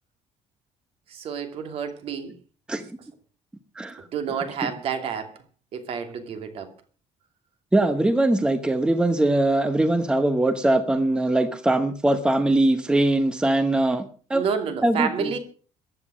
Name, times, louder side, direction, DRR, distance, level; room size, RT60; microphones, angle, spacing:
voice 1, 1.1-2.3 4.1-5.3 5.7-6.7 14.3-15.4, right 7 dB, 50° right, 8 dB, 2.7 m, -29 dB
voice 2, 7.7-14.0 14.3-14.4 14.8-15.3, right 1 dB, 5° right, 10 dB, 1.0 m, -21 dB
15.0 x 10.5 x 6.3 m, 0.40 s
cardioid pair, 165°, 13 cm